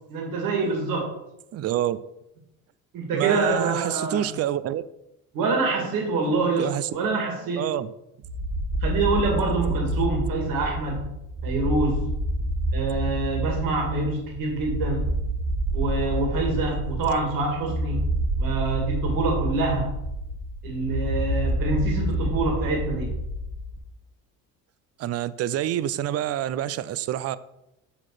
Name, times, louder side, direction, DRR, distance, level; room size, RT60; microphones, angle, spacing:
voice 1, 0.1-1.2 2.9-4.3 5.3-7.7 8.8-11.1 11.4-12.1 12.7-15.0 15.7-18.1 18.4-19.9 20.6-23.2, right 3 dB, 70° right, 0 dB, 2.2 m, -26 dB
voice 2, 1.5-2.0 3.1-4.8 6.6-6.9 7.6-7.9 25.0-27.4, right 12 dB, 45° right, 16 dB, 0.5 m, -27 dB
sound 1, 8.2-23.8, right 1 dB, 20° right, 1.1 m, -28 dB
7.6 x 4.3 x 4.9 m, 0.88 s
cardioid pair, 100°, 35 cm